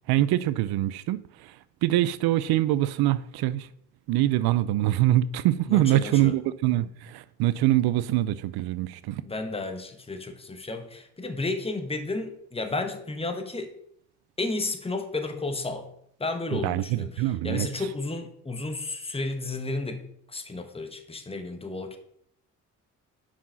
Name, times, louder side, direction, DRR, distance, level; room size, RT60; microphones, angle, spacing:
voice 1, 0.1-1.2 1.8-3.7 4.1-9.2 16.5-17.7, right 14 dB, 70° right, 0.5 m, -24 dB
voice 2, 5.7-6.4 9.2-13.7 14.4-15.9 16.2-20.0 20.3-22.0, left 3 dB, 15° left, 1.2 m, -32 dB
5.6 x 5.0 x 5.6 m
supercardioid pair, 60°, 39 cm